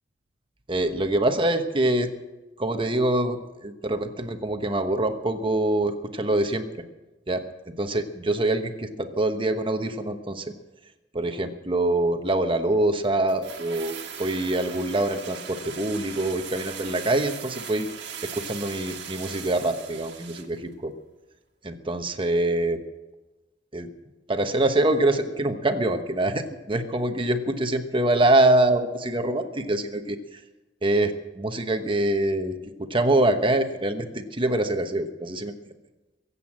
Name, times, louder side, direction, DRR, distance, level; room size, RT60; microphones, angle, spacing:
voice 1, 0.7-2.1 2.6-6.6 7.3-10.5 11.1-17.9 18.2-20.9 21.6-22.8 23.7-23.9 24.3-30.4 30.8-35.5, right 1 dB, 30° right, 7 dB, 1.1 m, -25 dB
sound 1, 13.3-20.6 20.8-20.9, right 7 dB, 65° right, 1.7 m, -39 dB
23.0 x 8.4 x 7.4 m, 1.1 s
head